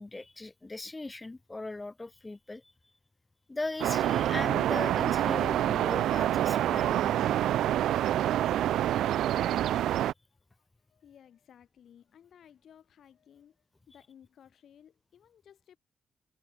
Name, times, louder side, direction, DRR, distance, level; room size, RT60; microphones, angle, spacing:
voice 1, 0.0-2.7 3.5-7.4 9.6-10.1, left 2 dB, 15° left, 0.8 m, -39 dB
sound 1, 3.8-10.1, right 12 dB, 85° right, 0.3 m, -27 dB
voice 2, 10.3-15.8, left 9 dB, 60° left, 6.7 m, -58 dB
cardioid pair, 125°, 0 cm